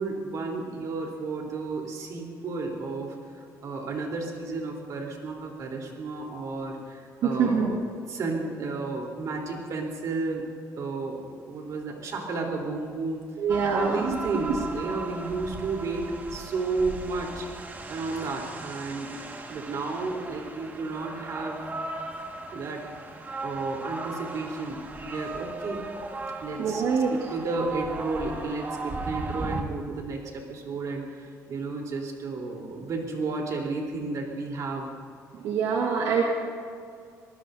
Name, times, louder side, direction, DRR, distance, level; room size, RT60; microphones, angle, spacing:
voice 1, 0.0-3.2 3.6-7.8 8.1-10.4 10.8-13.2 13.7-17.5 17.9-19.1 19.5-21.6 22.5-22.8 23.4-25.8 26.4-34.9, right 3 dB, 60° right, 0 dB, 3.8 m, -32 dB
voice 2, 7.2-7.8 13.4-14.2 26.6-27.1 35.3-36.2, right 6 dB, 80° right, -1 dB, 1.9 m, -25 dB
sound 1, 13.5-29.6, right 3 dB, 30° right, 1.8 m, -37 dB
27.0 x 19.0 x 2.7 m, 2.2 s
cardioid pair, 110°, 7 cm